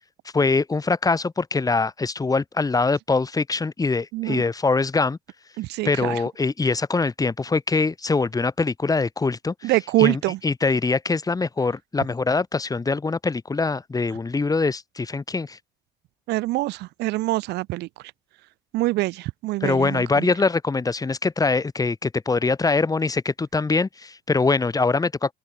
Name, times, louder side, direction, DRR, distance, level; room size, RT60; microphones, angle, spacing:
voice 1, 0.3-5.2 5.8-9.7 10.0-15.6 19.6-25.3, left 4 dB, 20° left, 5.6 m, -23 dB
voice 2, 4.1-4.4 5.6-6.2 9.6-10.4 16.3-17.9 18.7-20.3, right 19 dB, 85° right, 4.5 m, -24 dB
open air
cardioid pair, 110°, 17 cm